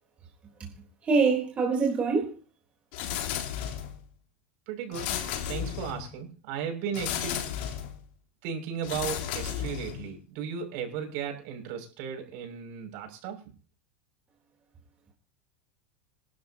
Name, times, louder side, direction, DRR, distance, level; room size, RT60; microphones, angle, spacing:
voice 1, 1.0-2.3, right 4 dB, 20° right, 3.8 m, -24 dB
sound 1, 2.9-4.0 4.9-6.1 6.9-8.0 8.8-10.1, left 10 dB, 65° left, 3.7 m, -33 dB
voice 2, 4.7-5.1 5.5-7.5 8.4-13.4, right 7 dB, 60° right, 6.6 m, -35 dB
26.0 x 12.0 x 2.9 m
supercardioid pair, 150°, 6 cm